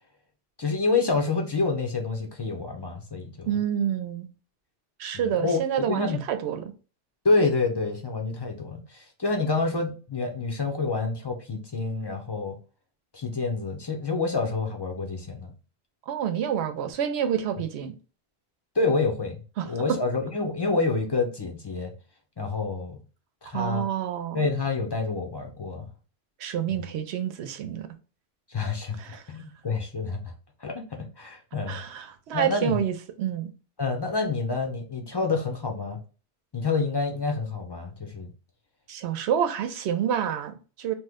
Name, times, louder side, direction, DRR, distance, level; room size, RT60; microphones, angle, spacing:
voice 1, 0.6-3.5 5.1-6.2 7.2-12.6 13.1-15.5 18.8-21.9 22.4-23.0 23.4-23.8 24.3-25.9 26.7-26.9 28.5-29.0 29.3-30.3 30.6-30.7 31.2-31.8 32.3-32.8 33.8-36.0 36.5-38.3, left 3 dB, 30° left, 0.5 m, -28 dB
voice 2, 3.5-4.3 5.0-6.7 16.1-17.9 19.6-20.0 23.5-24.5 26.4-27.9 29.0-29.2 31.7-33.5 38.9-40.9, right 9 dB, 90° right, 0.8 m, -28 dB
3.0 x 2.1 x 3.4 m
omnidirectional pair, 1.1 m